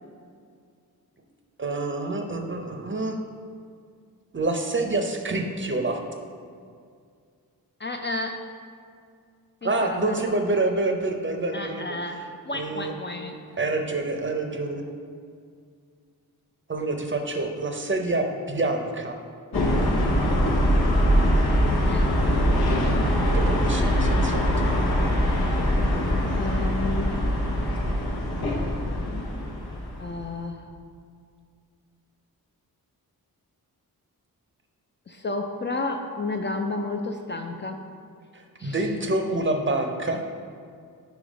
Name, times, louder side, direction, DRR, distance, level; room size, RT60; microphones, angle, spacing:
voice 1, 1.6-3.2 4.3-6.0 9.6-12.0 12.5-12.9 13.6-14.8 16.7-19.2 23.3-24.8 38.3-40.2, right 2 dB, 30° right, 4 dB, 0.6 m, -27 dB
voice 2, 7.8-8.5 9.6-10.2 11.5-13.4 20.3-20.7 21.8-22.6 26.3-27.1 28.6-29.5 30.0-30.7 35.1-37.8 38.6-38.8, left 2 dB, 30° left, 3 dB, 0.4 m, -32 dB
sound 1, 19.5-30.3, equal, 90° left, 1.0 m, -22 dB
5.2 x 4.7 x 5.0 m, 2.2 s
wide cardioid pair, 80°, 37 cm